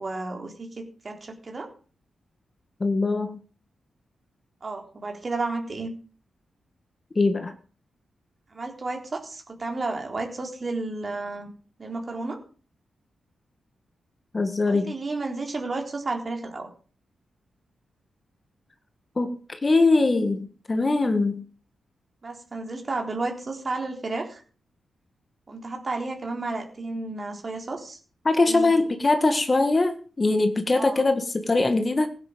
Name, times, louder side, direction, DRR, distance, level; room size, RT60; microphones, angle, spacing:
voice 1, 0.0-1.7 4.6-5.9 8.5-11.5 11.8-12.4 14.7-16.7 22.2-24.4 25.5-28.0 28.5-28.7 30.8-31.0, right 3 dB, 35° right, 3 dB, 3.8 m, -32 dB
voice 2, 2.8-3.4 7.1-7.5 14.3-14.9 19.1-21.4 28.2-32.1, left 3 dB, 30° left, 7 dB, 1.7 m, -22 dB
16.5 x 9.6 x 5.2 m, 0.39 s
cardioid pair, 100°, 0 cm